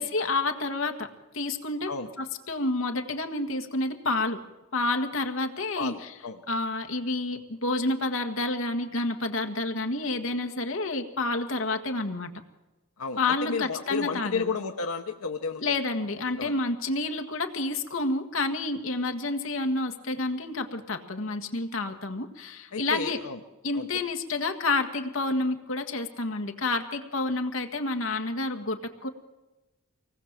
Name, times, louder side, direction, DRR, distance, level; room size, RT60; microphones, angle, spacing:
voice 1, 0.0-1.9 2.2-4.4 4.7-6.1 6.5-12.3 13.2-14.5 15.6-23.2 23.6-29.1, left 2 dB, 60° left, 6 dB, 1.7 m, -29 dB
voice 2, 5.8-6.4 13.0-15.6 16.4-16.5 21.8-22.0 22.7-23.4 23.7-23.9, left 5 dB, 85° left, 5 dB, 1.0 m, -32 dB
24.0 x 19.0 x 7.5 m, 1.1 s
head